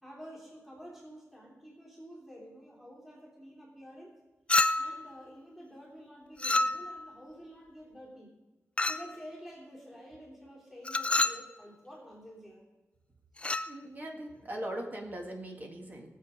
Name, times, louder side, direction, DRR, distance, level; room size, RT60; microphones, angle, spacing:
voice 1, 0.0-4.1 4.8-8.3 8.9-12.6 13.4-13.6, equal, 5° right, -5 dB, 3.3 m, -49 dB
Chink clink, 4.5-5.1 6.4-7.1 8.8-9.1 10.8-11.5 13.4-13.7, left 2 dB, 25° left, 0.4 m, -28 dB
voice 2, 13.7-16.1, right 1 dB, 35° right, 1 dB, 1.9 m, -40 dB
19.5 x 7.1 x 5.1 m, 1.2 s
wide cardioid pair, 140°, 5 cm